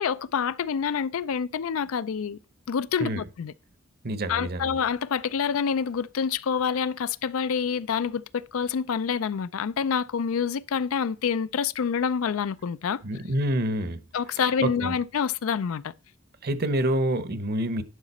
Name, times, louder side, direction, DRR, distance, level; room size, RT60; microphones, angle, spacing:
voice 1, 0.0-2.4 2.7-3.5 4.3-13.0 14.1-15.9, left 6 dB, 85° left, 0.4 m, -27 dB
voice 2, 4.0-4.8 13.0-14.0 14.6-14.9 16.4-17.8, right 1 dB, 50° right, 0.8 m, -27 dB
11.0 x 4.9 x 4.2 m
head